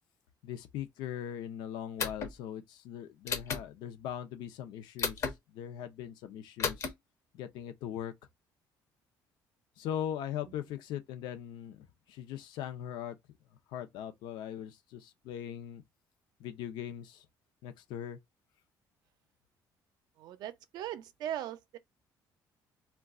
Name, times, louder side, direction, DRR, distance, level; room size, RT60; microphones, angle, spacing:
voice 1, 0.4-6.9 7.3-8.1 9.8-13.2 13.7-15.8 16.4-17.3 17.6-18.2, left 10 dB, 80° left, 0.6 m, -40 dB
sound 1, 2.0-2.3 3.3-3.6 5.0-5.3 6.6-6.9, left 6 dB, 40° left, 0.6 m, -33 dB
voice 2, 20.2-21.8, right 11 dB, 65° right, 0.5 m, -39 dB
2.3 x 2.3 x 3.6 m
cardioid pair, 160°, 8 cm